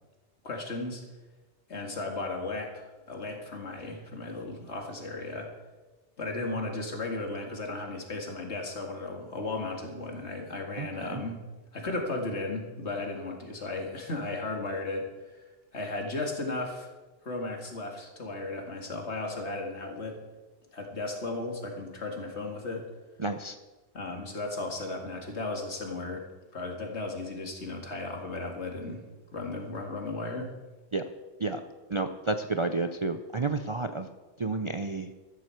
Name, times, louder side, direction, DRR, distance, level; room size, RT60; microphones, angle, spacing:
voice 1, 0.4-1.0 1.7-5.5 6.2-11.4 11.7-15.1 15.7-16.9 17.2-20.2 20.7-22.8 23.9-26.2 26.5-29.0 29.3-30.5, left 2 dB, 70° left, 2 dB, 2.4 m, -35 dB
voice 2, 10.8-11.2 23.2-23.6 30.9-31.0 31.4-31.6 31.9-34.1 34.4-35.1, right 3 dB, 35° right, 7 dB, 0.5 m, -30 dB
14.0 x 13.5 x 4.6 m, 1.2 s
omnidirectional pair, 1.2 m